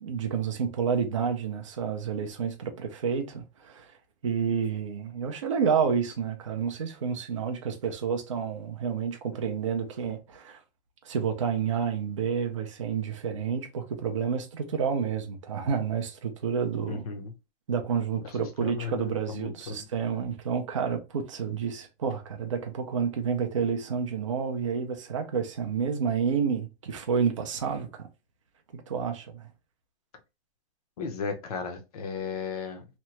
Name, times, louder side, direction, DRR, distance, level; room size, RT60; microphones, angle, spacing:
voice 1, 0.0-3.9 4.2-10.6 11.0-17.1 17.7-28.1 28.7-29.5, right 6 dB, 30° right, 0.4 m, -29 dB
voice 2, 16.9-17.3 18.2-19.8 31.0-32.9, left 5 dB, 35° left, 0.6 m, -35 dB
2.9 x 2.1 x 3.0 m
hypercardioid pair, 170°, 33 cm